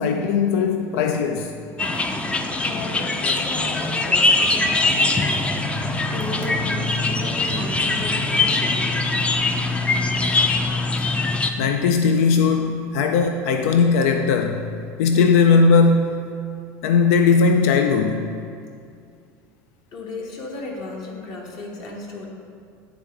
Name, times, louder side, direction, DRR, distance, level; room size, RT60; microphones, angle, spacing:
voice 1, 0.0-1.5 11.6-14.7 15.0-16.2 16.8-18.3, left 5 dB, 85° left, 5 dB, 0.3 m, -18 dB
sound 1, 1.8-11.5, left 2 dB, 15° left, 0.4 m, -22 dB
voice 2, 2.6-5.5 6.1-8.8 19.9-22.3, left 2 dB, 55° left, -1 dB, 1.2 m, -35 dB
9.0 x 3.8 x 3.4 m, 2.3 s
supercardioid pair, 115°, 8 cm